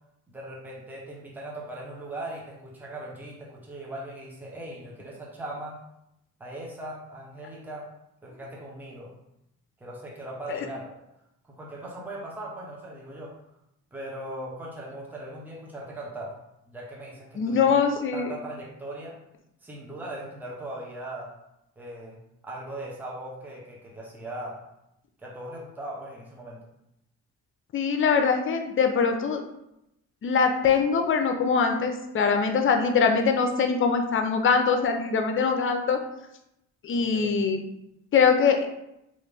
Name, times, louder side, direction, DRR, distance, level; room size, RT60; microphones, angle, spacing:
voice 1, 0.3-5.8 6.4-7.9 8.2-9.2 9.8-10.9 11.6-13.3 13.9-16.3 16.7-17.7 18.1-19.2 19.6-21.3 21.8-22.2 22.4-24.6 25.2-26.6 36.9-37.3, right 1 dB, 5° right, -4 dB, 0.8 m, -39 dB
voice 2, 17.4-18.3 27.7-29.4 30.2-36.0 36.8-37.6 38.1-38.7, left 5 dB, 45° left, 5 dB, 0.5 m, -23 dB
3.1 x 2.5 x 3.4 m, 0.84 s
cardioid pair, 90°, 30 cm